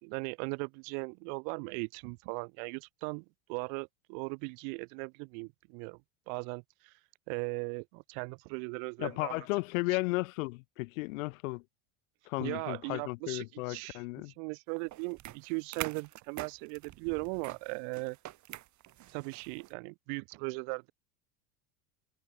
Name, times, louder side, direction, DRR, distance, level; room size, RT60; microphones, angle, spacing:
voice 1, 0.0-6.0 6.3-6.9 7.3-9.5 12.4-18.2 19.1-20.9, right 40 dB or more, 65° right, 2.6 m, -38 dB
voice 2, 9.0-11.6 12.3-14.3, left 24 dB, 70° left, 1.3 m, -34 dB
sound 1, 14.9-19.7, right 15 dB, 45° right, 4.1 m, -45 dB
supercardioid pair, 120°, 41 cm